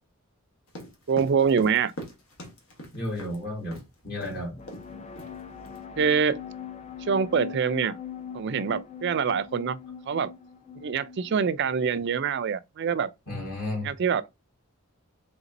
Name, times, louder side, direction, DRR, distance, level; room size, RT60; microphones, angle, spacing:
sound 1, 0.7-3.4 3.7-3.9 4.2-4.4 4.7-4.9 5.2-5.8, equal, 70° left, 1.3 m, -41 dB
voice 1, 1.1-1.9 6.0-6.4 7.0-8.0 8.3-9.8 10.1-10.3 10.8-13.1 13.8-14.2, right 6 dB, 55° right, 0.4 m, -25 dB
voice 2, 2.9-3.8 4.0-4.5 13.3-13.9, left 1 dB, 45° left, 2.1 m, -32 dB
sound 2, 4.5-12.1, left 8 dB, 30° left, 0.4 m, -41 dB
4.0 x 3.6 x 2.5 m
head